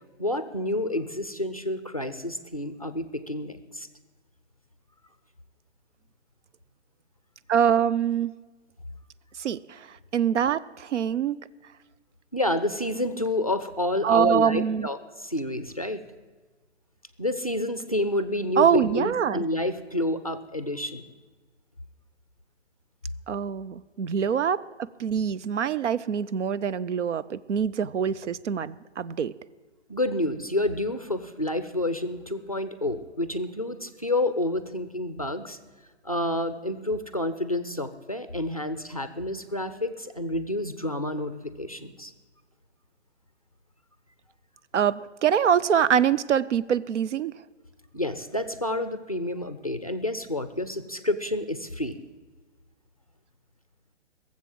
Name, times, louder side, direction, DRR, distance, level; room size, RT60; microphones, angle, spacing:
voice 1, 0.2-3.9 12.3-15.0 15.2-16.0 17.2-21.1 29.9-35.6 36.0-42.1 47.9-52.0, left 1 dB, 35° left, 10 dB, 0.4 m, -29 dB
voice 2, 7.5-8.3 9.4-11.4 14.0-14.9 18.6-19.4 23.3-29.3 44.7-47.3, right 8 dB, 80° right, 17 dB, 0.6 m, -24 dB
17.0 x 7.4 x 7.7 m, 1.3 s
hypercardioid pair, 180°, 35 cm